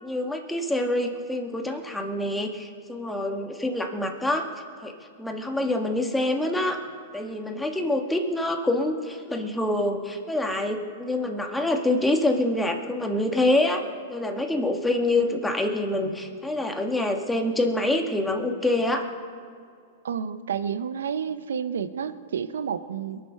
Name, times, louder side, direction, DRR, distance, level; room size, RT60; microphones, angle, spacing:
voice 1, 0.0-4.4 4.8-6.8 7.1-13.8 14.1-19.0, left 1 dB, 5° left, 2 dB, 1.8 m, -26 dB
voice 2, 20.0-23.2, right 7 dB, 80° right, 13 dB, 0.8 m, -30 dB
22.5 x 7.7 x 5.7 m, 2.3 s
hypercardioid pair, 115°, 0 cm